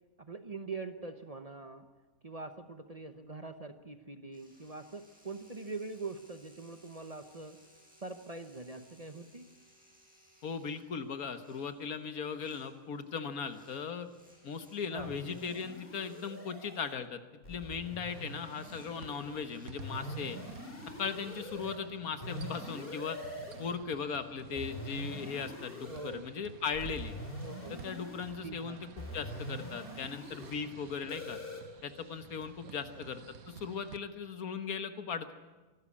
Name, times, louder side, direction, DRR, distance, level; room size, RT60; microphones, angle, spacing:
voice 1, 0.2-1.8 2.2-7.6 8.0-9.5 14.9-15.2 24.5-24.6 25.9-26.3 27.4-27.9 28.4-28.8 31.2-31.4 33.0-33.1, right 3 dB, 30° right, 8 dB, 0.9 m, -43 dB
sound 1, 4.3-16.5 17.9-19.7, right 1 dB, 5° right, 6.4 m, -64 dB
voice 2, 10.4-14.1 14.4-17.2 17.5-20.4 21.0-23.2 23.6-27.1 27.7-31.4 31.8-33.2 33.5-35.3, left 6 dB, 80° left, 9 dB, 1.7 m, -38 dB
sound 2, 15.0-16.9 17.4-19.4 19.8-21.8 22.2-23.8 24.6-26.1 26.7-28.4 29.0-30.6 31.1-31.6, left 1 dB, 40° left, 3.0 m, -44 dB
sound 3, 18.1-34.0, right 8 dB, 80° right, 1.4 m, -52 dB
25.0 x 12.5 x 8.5 m, 1.2 s
omnidirectional pair, 1.5 m